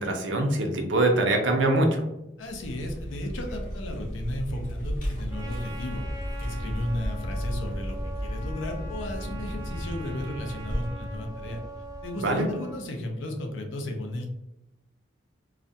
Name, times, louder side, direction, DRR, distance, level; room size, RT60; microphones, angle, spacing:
voice 1, 0.0-2.0 12.2-12.5, right 2 dB, 75° right, 3 dB, 0.5 m, -23 dB
voice 2, 2.4-6.0 6.4-11.6 12.0-14.3, left 1 dB, 85° left, 4 dB, 0.5 m, -34 dB
Vehicle, 2.4-12.8, equal, 45° left, 0.6 m, -34 dB
Trumpet, 5.3-12.9, right 1 dB, 20° right, 0.3 m, -43 dB
2.4 x 2.1 x 2.6 m, 0.90 s
head